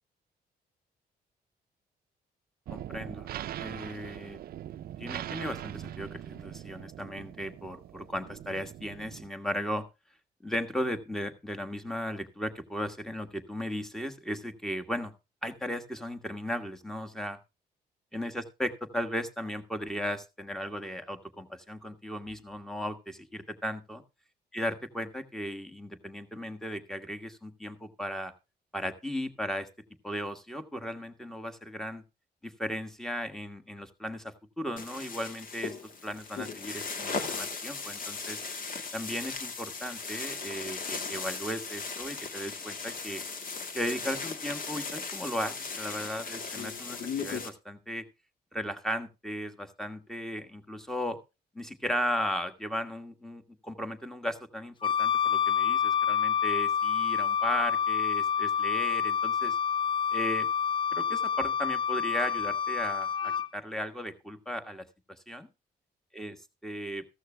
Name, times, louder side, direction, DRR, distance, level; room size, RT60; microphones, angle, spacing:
voice 1, 2.7-3.3 3.5-4.4 5.0-9.8 10.4-15.1 15.4-17.4 18.1-24.0 24.5-28.3 28.7-29.7 30.0-32.0 32.4-35.8 36.0-38.4 38.9-43.2 43.7-48.1 48.5-51.2 51.5-59.6 60.1-60.5 60.9-64.8 65.3-65.5 66.1-66.4 66.6-67.0, equal, 5° left, 8 dB, 1.4 m, -36 dB
sound 1, 2.7-9.3, right 12 dB, 65° right, 0.5 m, -41 dB
sound 2, 34.8-47.5, left 4 dB, 55° left, 1.9 m, -37 dB
Wind instrument woodwind instrument, 54.8-63.5, left 8 dB, 30° left, 0.6 m, -28 dB
14.5 x 14.0 x 2.2 m, 0.27 s
cardioid pair, 120°, 17 cm